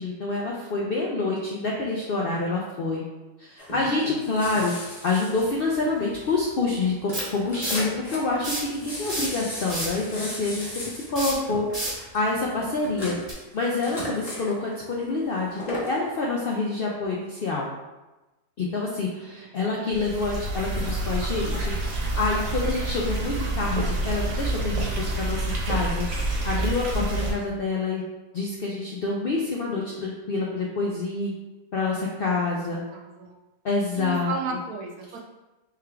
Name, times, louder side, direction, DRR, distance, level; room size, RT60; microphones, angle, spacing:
voice 1, 0.0-3.0 3.4-13.2 13.5-17.7 18.6-26.1 26.4-28.0 28.3-31.3 31.7-32.8 33.6-34.3, left 3 dB, 65° left, -3 dB, 0.5 m, -27 dB
sound 1, 3.6-6.4 6.6-6.8 7.1-7.2 7.4-8.5 8.7-14.5 15.3-16.0 16.5-16.6, left 1 dB, 30° left, 1.1 m, -37 dB
sound 2, 5.6-5.7 7.1-7.9 8.3-8.7 9.0-10.0 11.1-12.0 13.2-13.3, right 1 dB, 25° right, 1.5 m, -30 dB
sound 3, 19.9-27.3, right 2 dB, 65° right, 1.2 m, -28 dB
voice 2, 31.9-32.3 32.9-33.3 33.9-35.2, right 4 dB, 85° right, 0 dB, 1.3 m, -34 dB
3.6 x 3.4 x 3.3 m, 1.1 s
omnidirectional pair, 1.6 m